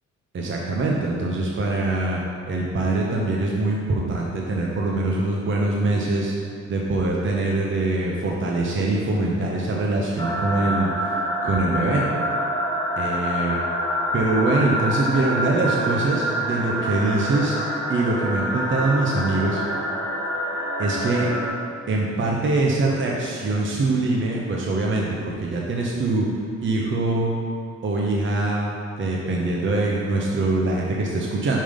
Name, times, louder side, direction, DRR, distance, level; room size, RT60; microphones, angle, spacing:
voice 1, 0.3-2.2 2.5-6.3 6.7-12.0 13.0-13.6 14.1-17.6 17.9-19.6 20.8-21.3 21.9-26.3 26.6-27.3 27.8-31.6, right 2 dB, 40° right, -2 dB, 0.9 m, -23 dB
sound 1, 10.2-21.5, equal, 10° left, 1.4 m, -26 dB
5.5 x 5.1 x 5.2 m, 2.2 s
cardioid pair, 115°, 29 cm